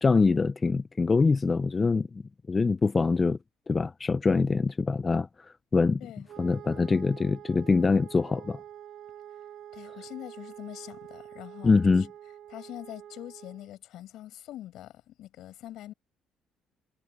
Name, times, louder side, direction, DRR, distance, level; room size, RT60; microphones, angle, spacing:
voice 1, 0.0-2.2 2.5-3.4 3.7-5.3 5.7-6.0 6.4-8.6 11.6-12.1, left 4 dB, 25° left, 0.5 m, -24 dB
Wind instrument woodwind instrument, 6.3-13.7, right 10 dB, 55° right, 3.0 m, -47 dB
voice 2, 9.7-12.1 12.5-15.9, left 13 dB, 70° left, 6.1 m, -44 dB
cardioid pair, 110°, 0 cm